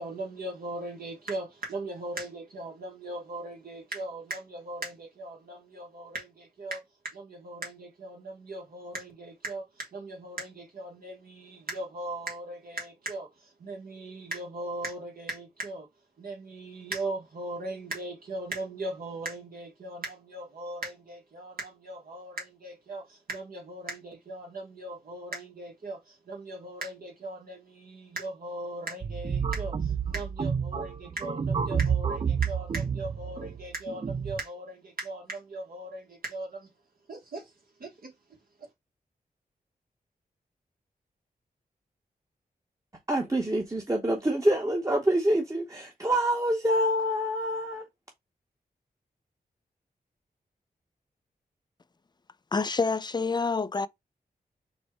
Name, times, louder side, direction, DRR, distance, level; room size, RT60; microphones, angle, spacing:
voice 1, 0.0-15.9 16.2-36.7 37.1-37.5 37.8-38.1 38.6-38.7, right 2 dB, 65° right, 1.2 m, -38 dB
sound 1, 29.0-34.4, right 7 dB, 35° right, 0.4 m, -30 dB
voice 2, 43.1-47.8, right 1 dB, 20° right, 1.0 m, -26 dB
voice 3, 52.5-53.9, left 4 dB, 25° left, 0.4 m, -27 dB
4.2 x 2.2 x 4.4 m
cardioid pair, 60°, 16 cm